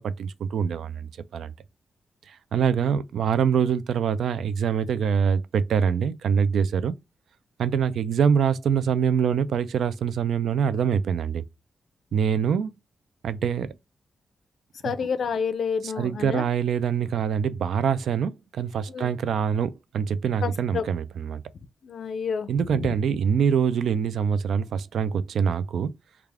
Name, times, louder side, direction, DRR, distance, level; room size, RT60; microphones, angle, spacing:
voice 1, 0.0-1.5 2.5-6.9 7.6-11.4 12.1-12.7 13.2-13.7 14.8-14.9 15.8-21.4 22.5-25.9, right 7 dB, 85° right, 0.3 m, -24 dB
voice 2, 14.8-16.4 18.9-19.1 20.4-20.9 21.8-22.5 22.8-22.9, left 6 dB, 55° left, 0.4 m, -29 dB
3.3 x 2.3 x 3.5 m
wide cardioid pair, 180°, 0 cm